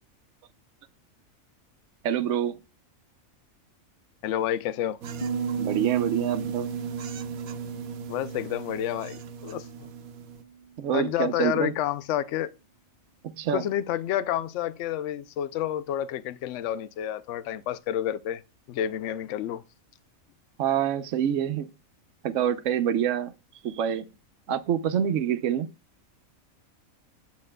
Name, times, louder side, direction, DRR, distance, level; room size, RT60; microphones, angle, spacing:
voice 1, 2.0-2.6 5.6-6.7 10.8-11.7 13.4-13.6 20.6-21.7 22.2-23.3 23.6-24.1 24.5-25.7, right 9 dB, 65° right, 1.0 m, -26 dB
voice 2, 4.2-5.0 8.1-9.9 10.9-12.5 13.5-18.4 18.7-19.6, left 11 dB, 65° left, 0.8 m, -29 dB
sound 1, 5.0-10.4, right 5 dB, 90° right, 1.1 m, -39 dB
Piano, 5.2-10.8, right 6 dB, 35° left, 1.1 m, -35 dB
8.6 x 8.2 x 2.2 m
omnidirectional pair, 1.5 m